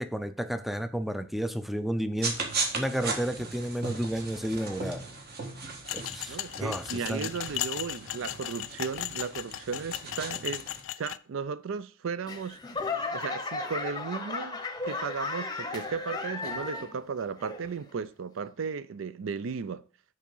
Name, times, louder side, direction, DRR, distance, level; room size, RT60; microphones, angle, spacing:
voice 1, 0.0-2.5 2.7-5.0 5.9-7.3, equal, ahead, 0.4 m, -32 dB
sound 1, 2.2-10.8, right 3 dB, 50° right, 1.5 m, -37 dB
sound 2, 5.9-11.2, left 14 dB, 65° left, 0.3 m, -36 dB
voice 2, 6.3-12.6 13.1-19.8, right 5 dB, 65° right, 0.4 m, -35 dB
Laughter / Clapping / Crowd, 12.3-17.0 17.4-17.9 18.5-18.6, left 3 dB, 20° left, 0.8 m, -35 dB
7.5 x 4.7 x 5.4 m
head